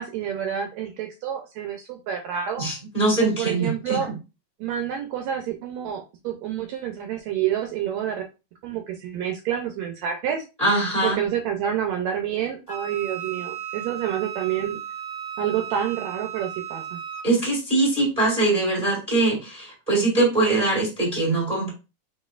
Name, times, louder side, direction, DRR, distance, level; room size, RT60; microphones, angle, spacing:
voice 1, 0.0-2.7 3.2-4.1 4.6-8.2 8.6-10.4 11.0-14.8 15.4-17.0, right 9 dB, 80° right, 4 dB, 1.7 m, -28 dB
voice 2, 2.6-4.0 10.6-11.2 17.2-21.7, right 2 dB, 15° right, -2 dB, 1.4 m, -22 dB
Wind instrument woodwind instrument, 12.7-17.3, right 9 dB, 50° left, 0.9 m, -35 dB
4.2 x 4.1 x 2.4 m, 0.29 s
omnidirectional pair, 3.3 m